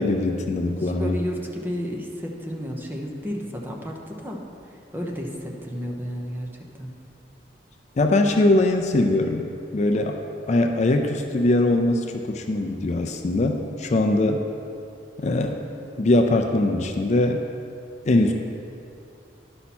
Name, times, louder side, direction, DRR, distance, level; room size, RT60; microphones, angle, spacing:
voice 1, 0.0-1.2 8.0-9.5 9.7-10.2 10.5-14.4 15.2-15.6 16.0-17.4 18.1-18.3, left 2 dB, 40° left, 4 dB, 0.4 m, -21 dB
voice 2, 0.8-4.4 4.7-6.5 6.8-6.9, equal, 10° right, 0 dB, 0.8 m, -32 dB
10.5 x 5.7 x 4.2 m, 2.6 s
head